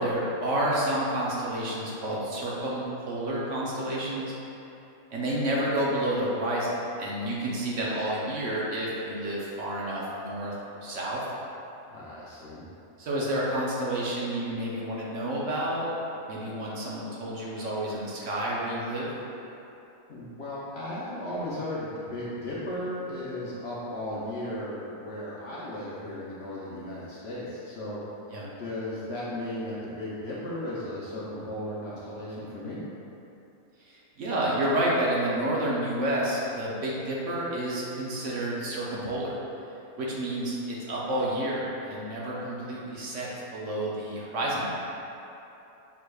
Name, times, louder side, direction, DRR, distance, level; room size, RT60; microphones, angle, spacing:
voice 1, 0.0-4.3 5.1-11.2 13.0-15.9 16.3-19.1 28.3-28.5 33.9-39.4 40.0-44.7, right 1 dB, 65° right, -5 dB, 1.0 m, -30 dB
voice 2, 11.9-12.6 20.1-28.0 28.6-32.8, left 1 dB, 60° left, -8 dB, 0.8 m, -35 dB
5.8 x 3.2 x 2.3 m, 2.9 s
omnidirectional pair, 1.5 m